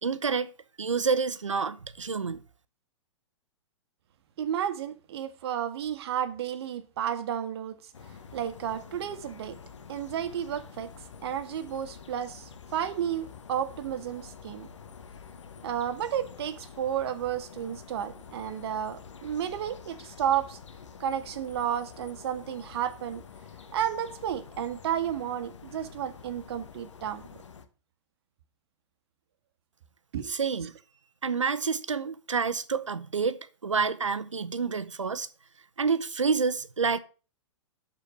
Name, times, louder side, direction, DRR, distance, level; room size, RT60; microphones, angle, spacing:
voice 1, 0.0-0.5 0.8-2.4 30.3-30.7 31.2-35.3 35.8-37.0, right 5 dB, 90° right, 0.8 m, -28 dB
voice 2, 4.4-7.8 8.3-9.6 9.9-10.9 11.2-14.7 15.6-20.6 21.0-23.2 23.7-27.2 30.1-30.3, right 9 dB, 55° right, 1.4 m, -32 dB
sound 1, 7.9-27.7, left 6 dB, 75° left, 1.2 m, -48 dB
11.5 x 4.5 x 6.3 m
hypercardioid pair, 115°, 16 cm